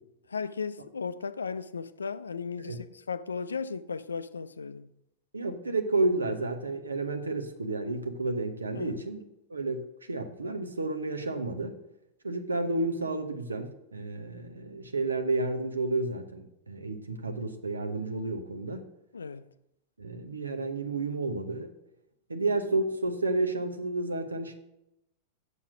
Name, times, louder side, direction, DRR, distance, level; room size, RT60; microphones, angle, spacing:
voice 1, 0.3-4.9 8.7-9.0 19.1-19.4, left 5 dB, 75° left, 0.4 m, -36 dB
voice 2, 5.3-9.2 9.5-11.7 12.2-18.8 20.0-21.7 22.3-24.5, right 2 dB, 75° right, 1.0 m, -31 dB
8.2 x 7.3 x 5.0 m
figure-of-eight pair, 90°, 0 cm